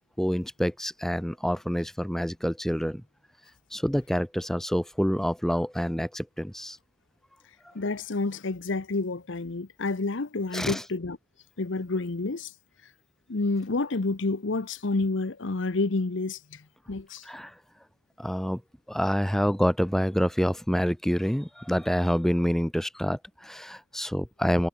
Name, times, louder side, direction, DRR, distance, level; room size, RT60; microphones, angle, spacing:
voice 1, 0.2-3.0 3.7-6.8 7.6-7.7 10.5-10.8 17.2-17.6 18.2-18.6 18.9-24.7, equal, ahead, 0.6 m, -27 dB
voice 2, 7.7-11.2 11.6-12.5 13.3-17.2, left 3 dB, 65° left, 0.9 m, -29 dB
head